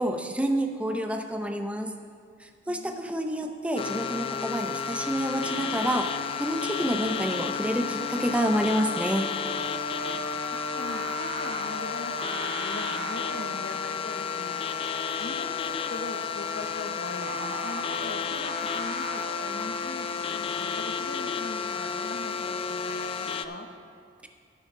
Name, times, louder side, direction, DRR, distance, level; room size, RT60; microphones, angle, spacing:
voice 1, 0.0-1.9 2.7-6.1 6.4-9.2, equal, 5° right, 5 dB, 0.6 m, -28 dB
voice 2, 2.7-3.1 10.1-14.6 15.2-23.7, left 2 dB, 60° left, 5 dB, 1.0 m, -41 dB
sound 1, 3.8-23.5, left 6 dB, 30° left, 0.3 m, -32 dB
Singing, 5.1-23.6, right 3 dB, 70° right, 0.7 m, -42 dB
11.0 x 10.5 x 3.7 m, 2.3 s
head